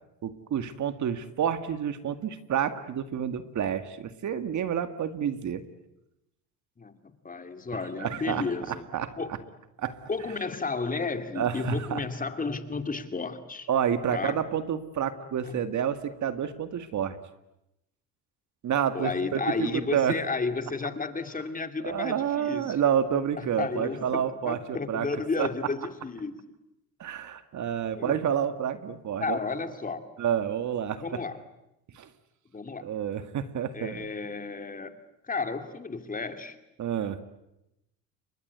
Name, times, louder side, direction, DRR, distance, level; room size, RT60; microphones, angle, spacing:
voice 1, 0.2-5.6 8.0-9.4 9.8-10.0 11.4-12.0 13.7-17.2 18.6-19.4 19.7-20.2 21.8-25.1 25.4-25.5 27.0-29.4 30.2-31.2 31.9-32.1 32.8-34.1 36.8-37.2, right 8 dB, 55° right, 10 dB, 2.1 m, -29 dB
voice 2, 6.8-8.9 9.2-9.3 10.1-13.7 14.1-14.5 15.4-15.7 18.9-22.8 23.4-26.4 27.9-28.2 29.2-30.1 31.0-31.4 32.5-32.9 33.7-35.0 35.2-36.6, left 4 dB, 25° left, 8 dB, 2.5 m, -32 dB
29.5 x 24.0 x 8.2 m, 0.86 s
cardioid pair, 105°, 35 cm